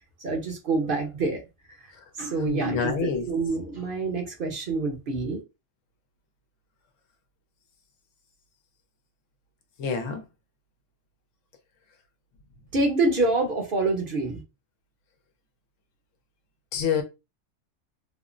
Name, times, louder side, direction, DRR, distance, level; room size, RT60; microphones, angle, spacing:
voice 1, 0.2-1.4 2.2-5.4 12.7-14.4, right 3 dB, 50° right, 0.8 m, -26 dB
voice 2, 2.4-3.3 9.8-10.2 16.7-17.0, left 6 dB, 80° left, 1.1 m, -27 dB
3.5 x 2.0 x 2.4 m
omnidirectional pair, 1.3 m